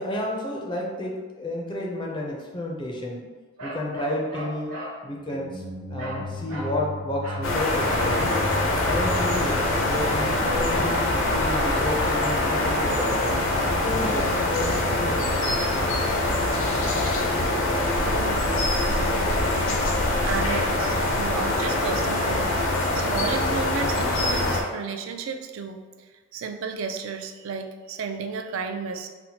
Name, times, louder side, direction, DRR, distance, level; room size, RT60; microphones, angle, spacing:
voice 1, 0.0-3.2 3.6-4.7 5.0-5.6 5.9-8.4 8.8-13.4 13.6-15.3, left 1 dB, 25° left, -1 dB, 0.4 m, -31 dB
Bark, 3.6-5.0 6.0-6.2 6.5-6.8 7.2-7.5 7.9-8.2, right 1 dB, 90° right, 1.2 m, -36 dB
sound 1, 5.2-11.1, left 1 dB, 50° right, 0.8 m, -36 dB
sound 2, 7.4-24.6, left 2 dB, 75° left, 0.6 m, -24 dB
voice 2, 18.0-18.5 18.9-19.3 20.2-25.8 26.3-29.1, right 5 dB, 70° right, 6 dB, 0.3 m, -33 dB
4.2 x 2.1 x 2.8 m, 1.4 s
head